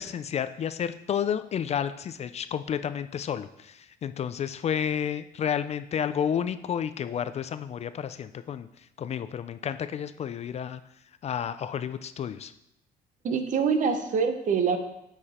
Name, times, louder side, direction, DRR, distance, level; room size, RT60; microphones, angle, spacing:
voice 1, 0.0-8.7 9.0-10.8 11.2-12.5, left 8 dB, 40° left, 12 dB, 0.4 m, -31 dB
voice 2, 13.2-14.8, right 6 dB, 50° right, 8 dB, 1.0 m, -25 dB
8.6 x 4.9 x 4.3 m, 0.82 s
cardioid pair, 110°, 17 cm